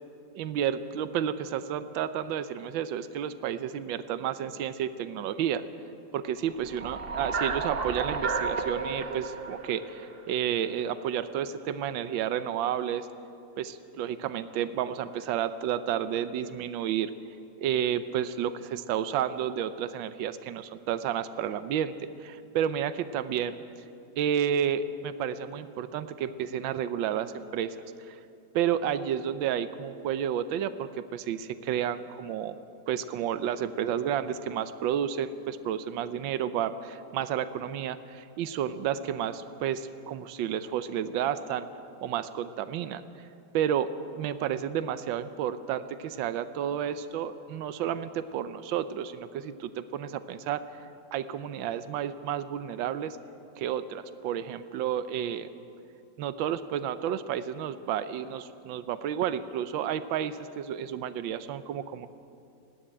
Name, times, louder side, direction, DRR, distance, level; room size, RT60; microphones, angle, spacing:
voice 1, 0.3-5.6 6.1-13.1 13.6-17.1 17.6-21.9 22.2-23.6 24.2-27.8 28.1-28.2 28.5-32.6 32.9-41.7 42.0-43.0 43.5-43.9 44.2-50.6 51.1-53.2 53.6-55.5 56.2-62.1, right 9 dB, 80° right, 11 dB, 1.5 m, -31 dB
sound 1, 6.6-10.9, right 4 dB, 35° right, 1.1 m, -33 dB
18.5 x 15.5 x 10.0 m, 2.6 s
omnidirectional pair, 2.1 m